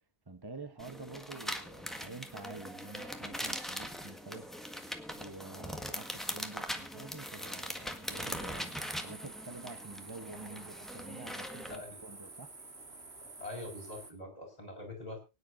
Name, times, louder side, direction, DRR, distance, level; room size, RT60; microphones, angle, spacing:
voice 1, 0.3-12.5, right 3 dB, 20° right, 1.0 m, -48 dB
sound 1, 0.8-11.8, equal, ahead, 1.5 m, -41 dB
sound 2, 8.1-14.1, right 3 dB, 70° right, 2.6 m, -50 dB
voice 2, 11.6-12.0 13.4-15.2, left 2 dB, 35° left, 5.8 m, -44 dB
24.0 x 9.9 x 2.6 m
omnidirectional pair, 1.1 m